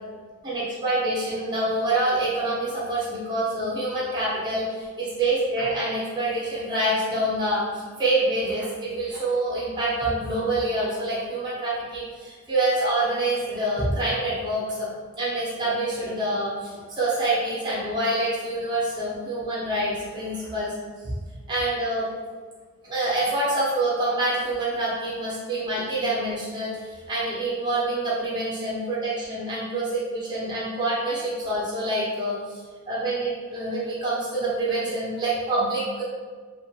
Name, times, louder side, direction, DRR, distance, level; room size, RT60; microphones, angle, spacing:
voice 1, 0.4-14.9 15.2-20.7 21.0-21.2 21.5-22.1 22.8-36.0, right 1 dB, 20° right, -8 dB, 0.6 m, -26 dB
2.5 x 2.3 x 2.8 m, 1.5 s
head